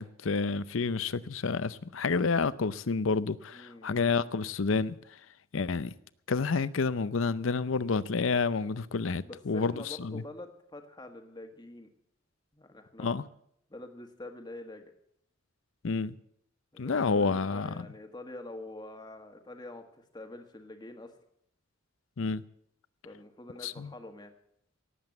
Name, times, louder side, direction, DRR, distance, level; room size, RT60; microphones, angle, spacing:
voice 1, 0.0-5.0 5.5-5.9 6.3-10.2 13.0-13.2 15.8-16.2 16.8-17.7 22.2-22.4 23.6-23.9, left 4 dB, 70° left, 0.6 m, -29 dB
voice 2, 3.5-4.0 9.2-11.9 12.5-13.2 13.7-14.9 16.7-21.2 23.0-24.3, left 2 dB, 20° left, 1.5 m, -46 dB
18.0 x 8.0 x 7.8 m
head